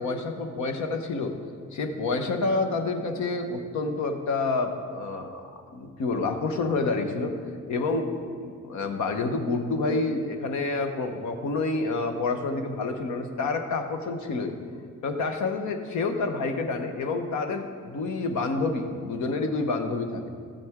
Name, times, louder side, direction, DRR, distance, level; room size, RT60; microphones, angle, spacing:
voice 1, 0.0-1.3 1.7-7.4 7.7-8.1 8.4-14.5 15.0-20.3, left 3 dB, 70° left, 6 dB, 1.1 m, -28 dB
13.5 x 7.7 x 3.6 m, 2.2 s
cardioid pair, 90°, 30 cm